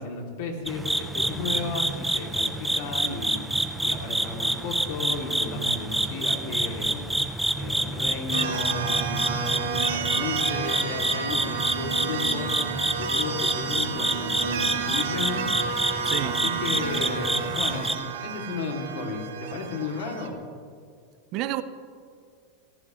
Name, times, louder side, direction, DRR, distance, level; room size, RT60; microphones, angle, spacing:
voice 1, 0.0-7.1 7.5-17.9 18.2-20.4, left 3 dB, 70° left, 2.7 m, -34 dB
sound 1, 0.7-18.0, right 1 dB, 5° right, 0.8 m, -28 dB
sound 2, 8.3-20.3, right 6 dB, 85° right, 1.2 m, -31 dB
voice 2, 16.0-16.4 21.3-21.6, right 14 dB, 50° right, 0.7 m, -29 dB
23.5 x 15.0 x 3.2 m
supercardioid pair, 120°, 0 cm